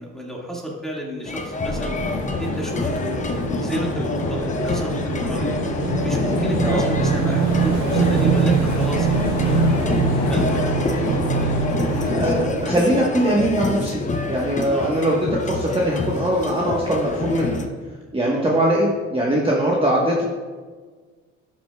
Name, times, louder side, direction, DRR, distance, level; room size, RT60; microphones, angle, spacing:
voice 1, 0.0-1.9 2.4-5.5 6.0-10.8 14.7-14.9 18.2-18.6, right 1 dB, ahead, -2 dB, 1.8 m, -31 dB
sound 1, 1.3-17.7, left 2 dB, 25° left, 0.7 m, -27 dB
sound 2, 1.6-12.5, left 2 dB, 75° left, 1.3 m, -26 dB
Motorcycle / Engine, 5.2-13.4, right 7 dB, 65° right, 0.6 m, -24 dB
voice 2, 11.8-17.6 18.1-20.2, right 1 dB, 20° right, -4 dB, 1.2 m, -21 dB
11.5 x 6.3 x 2.3 m, 1.5 s
cardioid pair, 90°, 30 cm